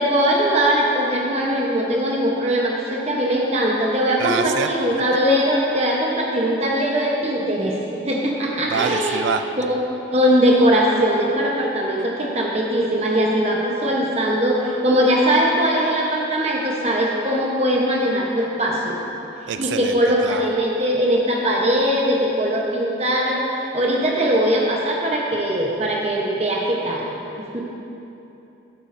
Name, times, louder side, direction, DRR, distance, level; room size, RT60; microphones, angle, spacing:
voice 1, 0.0-9.2 9.6-9.8 10.1-19.0 19.6-27.0 27.4-27.6, equal, 35° right, -2 dB, 0.9 m, -20 dB
voice 2, 4.2-4.7 8.7-9.4 19.5-20.0 20.2-20.4, right 7 dB, 65° right, 9 dB, 0.3 m, -25 dB
13.5 x 8.4 x 2.6 m, 2.9 s
head